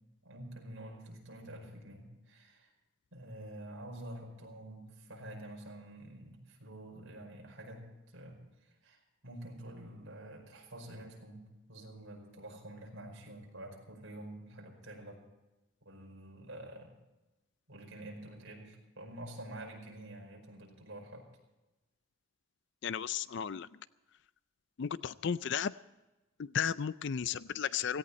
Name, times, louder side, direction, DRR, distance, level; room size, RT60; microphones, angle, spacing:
voice 1, 0.2-2.7 3.1-7.8 8.1-8.4 8.8-15.3 15.9-16.9 17.7-21.3, right 1 dB, 60° right, 0 dB, 5.1 m, -48 dB
voice 2, 22.8-23.7 24.8-25.7 26.4-28.0, left 7 dB, 55° left, 16 dB, 0.4 m, -34 dB
17.5 x 16.5 x 4.2 m, 1.0 s
head